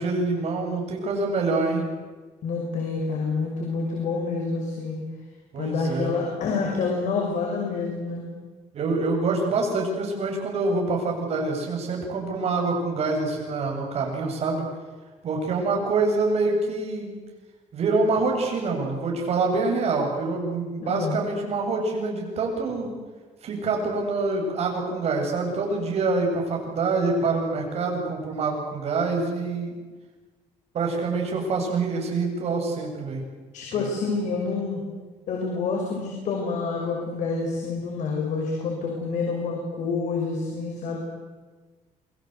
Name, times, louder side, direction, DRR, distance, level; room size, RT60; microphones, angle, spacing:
voice 1, 0.0-1.8 5.5-6.2 8.7-14.6 15.2-17.2 17.7-23.0 23.4-29.7 30.7-33.2 33.7-33.9, right 3 dB, 50° right, 1 dB, 7.8 m, -26 dB
voice 2, 2.4-5.0 5.6-8.2 20.8-21.1 33.5-34.8 35.3-41.0, left 4 dB, 65° left, 0 dB, 6.3 m, -28 dB
28.0 x 22.5 x 8.3 m, 1.3 s
cardioid pair, 145°, 13 cm